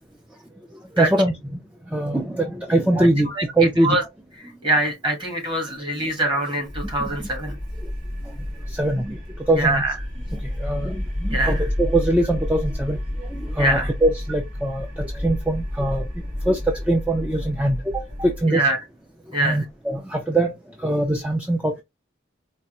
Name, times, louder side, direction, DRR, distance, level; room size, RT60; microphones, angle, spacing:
voice 1, 0.9-1.6 1.9-4.0 7.0-7.1 8.7-9.8 10.3-16.0 16.5-18.7 19.4-20.5 20.8-21.8, right 1 dB, 5° right, 0.4 m, -23 dB
voice 2, 3.0-3.4 3.8-4.0 4.6-7.6 9.5-9.9 11.3-11.7 13.6-13.9 18.5-18.8 19.3-19.6, right 1 dB, 25° right, 1.2 m, -24 dB
sound 1, 6.7-18.4, left 1 dB, 70° right, 2.5 m, -30 dB
4.5 x 2.4 x 2.9 m
head